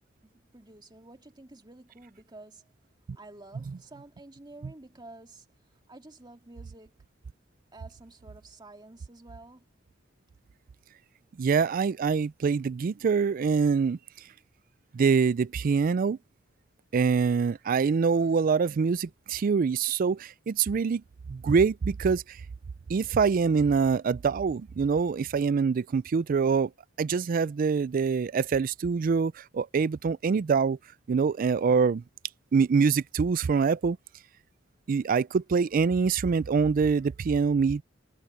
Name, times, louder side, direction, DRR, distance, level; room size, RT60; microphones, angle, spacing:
voice 1, 0.2-2.7 3.1-5.5 5.9-7.0 7.7-9.7, right 2 dB, 25° right, 2.1 m, -50 dB
voice 2, 11.4-14.0 14.9-16.2 16.9-21.0 21.3-22.4 22.9-26.7 27.0-30.8 31.1-32.0 32.5-34.0 34.9-37.8, right 5 dB, 45° right, 0.3 m, -25 dB
head